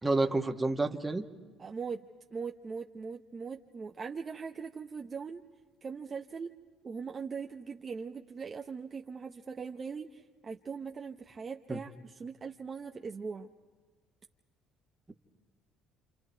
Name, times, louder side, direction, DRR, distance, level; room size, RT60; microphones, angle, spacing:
voice 1, 0.0-1.2 11.7-11.8 15.1-15.2, right 2 dB, 15° right, 5 dB, 1.5 m, -29 dB
voice 2, 1.6-2.0 2.3-5.4 5.8-6.5 6.8-13.5, right 5 dB, 35° right, 3 dB, 0.9 m, -40 dB
29.0 x 27.5 x 4.6 m, 1.4 s
cardioid pair, 95°, 0 cm